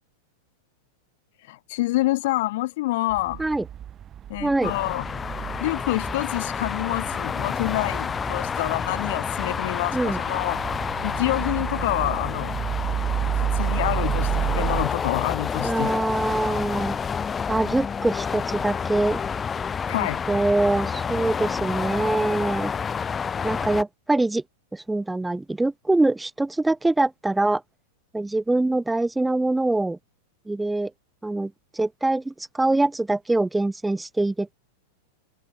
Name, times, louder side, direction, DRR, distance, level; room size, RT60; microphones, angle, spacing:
voice 1, 1.5-3.4 4.3-5.1 5.6-10.6 11.0-12.6 13.3-15.9 19.9-20.2, left 18 dB, 65° left, 2.2 m, -27 dB
sound 1, 3.1-14.9, right 10 dB, 30° right, 0.5 m, -31 dB
voice 2, 4.4-4.7 9.9-10.2 15.6-17.0 17.5-19.2 20.3-22.7 23.4-24.4 24.7-27.6 28.1-30.0 30.5-30.9 31.2-34.5, right 2 dB, 5° right, 1.0 m, -24 dB
sound 2, 4.6-23.8, left 6 dB, 20° left, 1.0 m, -29 dB
hypercardioid pair, 115°, 0 cm